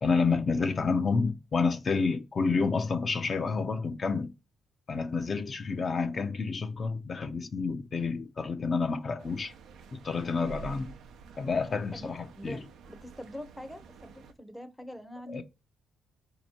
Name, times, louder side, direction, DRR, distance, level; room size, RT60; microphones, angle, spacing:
voice 1, 0.0-4.3 4.9-9.5 9.9-10.9 11.4-12.6 15.3-15.4, left 4 dB, 40° left, 0.6 m, -29 dB
voice 2, 0.5-1.4 11.9-12.1 12.4-15.4, equal, ahead, 0.7 m, -44 dB
sound 1, 9.2-14.3, right 5 dB, 75° right, 0.6 m, -49 dB
4.3 x 2.9 x 4.2 m
cardioid pair, 90°, 0 cm